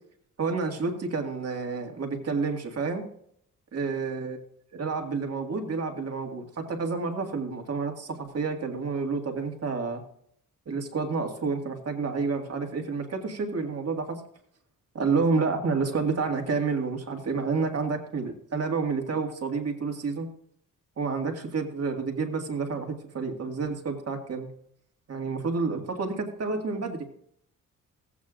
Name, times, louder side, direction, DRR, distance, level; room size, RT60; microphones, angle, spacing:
voice 1, 0.4-3.0 3.7-4.4 4.7-10.0 10.7-14.2 14.9-20.3 21.0-24.5 25.1-27.1, right 4 dB, 50° right, 4 dB, 1.9 m, -29 dB
16.0 x 8.5 x 2.5 m, 0.67 s
cardioid pair, 105°, 33 cm